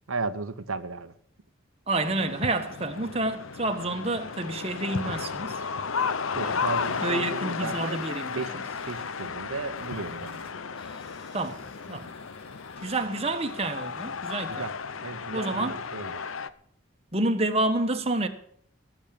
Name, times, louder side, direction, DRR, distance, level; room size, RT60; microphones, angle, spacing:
voice 1, 0.1-1.1 6.3-8.6 8.9-10.5 14.5-14.7 15.0-16.2, right 4 dB, 80° right, 0.8 m, -35 dB
voice 2, 1.9-5.6 6.4-6.6 7.0-8.4 11.3-12.1 12.8-14.7 15.3-15.8 17.1-18.3, right 2 dB, 30° right, 1.2 m, -29 dB
sound 1, 2.0-16.5, left 5 dB, 75° left, 0.8 m, -34 dB
sound 2, 6.3-14.3, left 1 dB, 30° left, 3.0 m, -55 dB
17.0 x 7.2 x 8.7 m
head